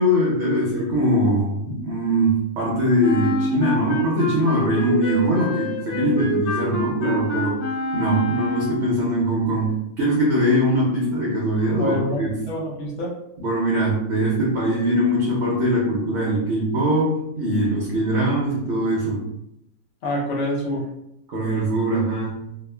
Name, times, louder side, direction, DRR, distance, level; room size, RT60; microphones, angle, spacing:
voice 1, 0.0-7.6 7.9-12.4 13.4-19.3 21.3-22.5, equal, 60° right, -5 dB, 0.8 m, -22 dB
Wind instrument woodwind instrument, 3.0-9.0, equal, 85° left, 1.3 m, -27 dB
voice 2, 11.8-13.2 20.0-20.9, left 1 dB, 60° left, -2 dB, 0.9 m, -26 dB
2.8 x 2.3 x 2.2 m, 0.82 s
omnidirectional pair, 1.6 m